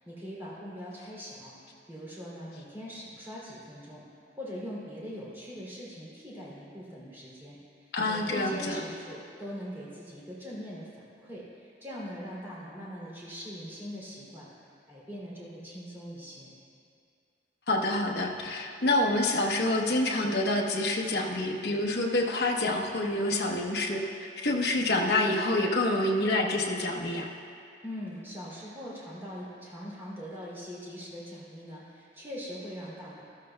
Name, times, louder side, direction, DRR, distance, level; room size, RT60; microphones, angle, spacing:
voice 1, 0.0-1.5 1.9-4.0 4.3-14.5 14.9-16.5 27.8-33.2, equal, 15° right, -7 dB, 2.8 m, -42 dB
voice 2, 7.9-8.8 17.7-27.3, left 2 dB, 70° left, 0 dB, 1.0 m, -27 dB
13.5 x 13.0 x 2.3 m, 2.4 s
head